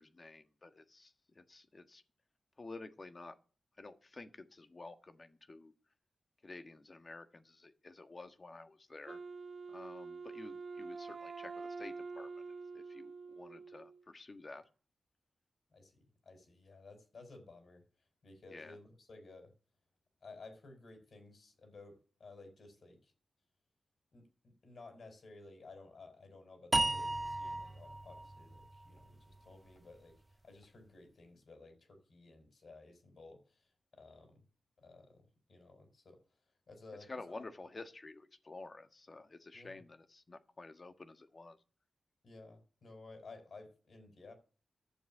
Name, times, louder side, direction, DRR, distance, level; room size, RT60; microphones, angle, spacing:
voice 1, 0.0-2.0 2.6-3.3 3.8-5.7 6.4-9.2 9.7-12.3 12.7-14.6 18.5-18.8 37.1-41.6, left 3 dB, 40° left, 8 dB, 1.5 m, -51 dB
Wind instrument woodwind instrument, 9.1-14.0, right 4 dB, 55° right, 0.7 m, -46 dB
voice 2, 15.7-17.8 18.2-19.5 20.2-23.1 24.1-34.4 34.8-36.2 36.7-37.4 39.5-39.8 42.2-44.3, left 3 dB, 65° left, 6 dB, 4.6 m, -55 dB
sound 1, 26.7-29.9, right 2 dB, 25° right, 0.5 m, -36 dB
11.5 x 7.2 x 7.3 m, 0.37 s
cardioid pair, 75°, 0 cm